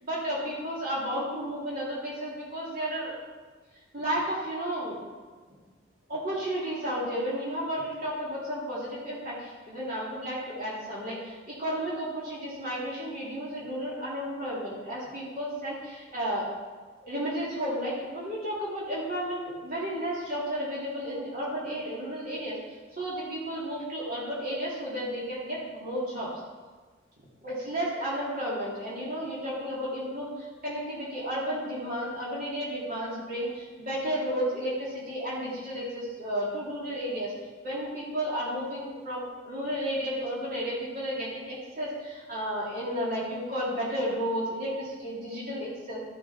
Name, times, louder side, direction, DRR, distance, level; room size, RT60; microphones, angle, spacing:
voice 1, 0.0-3.1 3.9-5.0 6.1-16.5 17.0-22.6 22.9-26.3 27.4-37.3 37.6-46.0, equal, 50° right, -7 dB, 3.0 m, -32 dB
13.0 x 6.9 x 4.3 m, 1.4 s
head